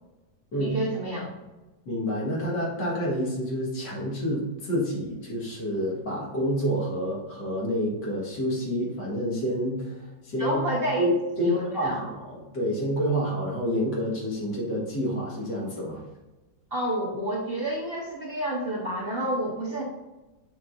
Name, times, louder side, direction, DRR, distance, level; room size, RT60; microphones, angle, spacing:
voice 1, 0.6-1.3 10.4-11.0 11.4-12.0 16.7-19.8, right 1 dB, 40° right, -4 dB, 1.0 m, -29 dB
voice 2, 1.9-10.6 11.0-11.1 11.4-16.0, equal, 65° left, -4 dB, 2.4 m, -28 dB
7.7 x 5.3 x 2.6 m, 1.1 s
omnidirectional pair, 2.0 m